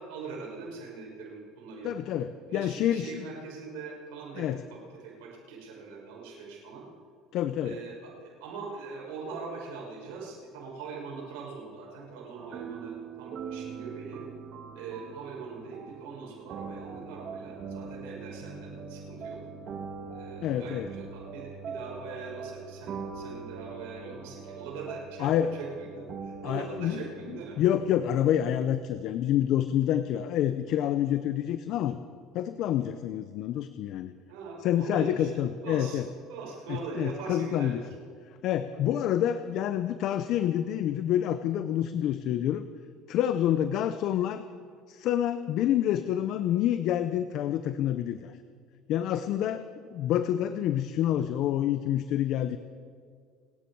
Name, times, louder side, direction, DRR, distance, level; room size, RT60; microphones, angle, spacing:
voice 1, 0.0-2.1 2.5-6.8 7.6-14.2 14.7-19.4 20.1-27.6 34.3-36.0 36.3-37.8, right 4 dB, 85° right, -3 dB, 5.4 m, -42 dB
voice 2, 1.8-3.3 4.4-4.6 7.3-7.8 20.4-20.9 25.2-25.5 26.4-27.0 27.3-32.0 32.3-34.1 34.6-36.1 36.7-37.8 38.4-42.6 43.1-44.4 44.9-48.4 48.9-52.6, left 11 dB, 60° left, 11 dB, 0.7 m, -28 dB
sound 1, 12.4-27.7, right 5 dB, 50° right, 1.7 m, -42 dB
30.0 x 10.0 x 4.7 m, 2.1 s
supercardioid pair, 110°, 0 cm